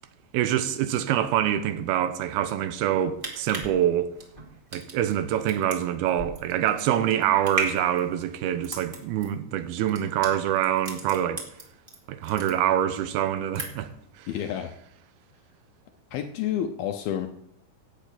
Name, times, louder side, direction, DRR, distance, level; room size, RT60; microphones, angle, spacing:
voice 1, 0.3-4.1 4.7-11.4 12.1-13.9 14.2-14.3, right 11 dB, 80° right, 2.6 m, -25 dB
sound 1, 3.1-12.0 12.2-13.0 13.3-14.0 14.3-14.5, right 2 dB, 20° right, 1.4 m, -36 dB
voice 2, 14.3-14.7 16.1-17.3, left 10 dB, 75° left, 2.5 m, -29 dB
14.5 x 6.6 x 8.5 m
omnidirectional pair, 4.6 m